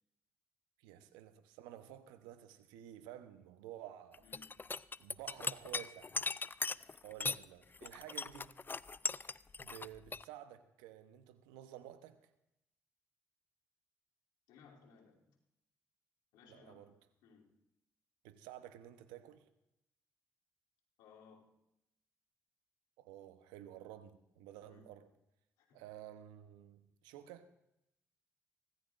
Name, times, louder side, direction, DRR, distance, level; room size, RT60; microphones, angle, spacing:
voice 1, 0.8-4.2 5.0-6.2 7.0-8.5 9.6-12.3 16.5-16.9 18.2-19.5 23.0-25.1 25.7-27.5, right 12 dB, 85° right, 11 dB, 0.9 m, -52 dB
sound 1, 4.1-7.4 7.7-10.2, left 4 dB, 25° left, 0.4 m, -39 dB
voice 2, 4.2-4.6 14.5-15.3 16.3-16.9 17.2-17.5 21.0-21.5 24.6-24.9 25.6-25.8, left 5 dB, 85° left, -3 dB, 3.0 m, -62 dB
24.5 x 13.5 x 2.5 m, 0.85 s
hypercardioid pair, 50°, 7 cm